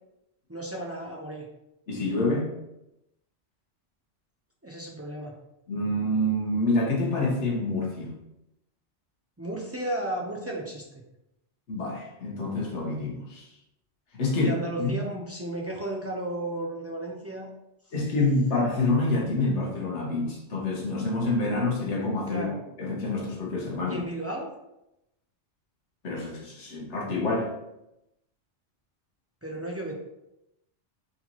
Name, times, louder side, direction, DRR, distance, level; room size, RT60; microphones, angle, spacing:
voice 1, 0.5-1.5 4.6-5.3 9.4-10.9 14.3-17.5 22.3-22.6 23.8-24.5 29.4-29.9, right 1 dB, 25° right, -1 dB, 0.3 m, -34 dB
voice 2, 1.9-2.5 5.7-8.1 11.7-13.5 14.1-14.5 14.8-15.0 17.9-22.5 22.8-24.0 26.0-27.5, left 2 dB, 75° left, -2 dB, 1.4 m, -27 dB
4.0 x 4.0 x 2.9 m, 0.87 s
omnidirectional pair, 1.2 m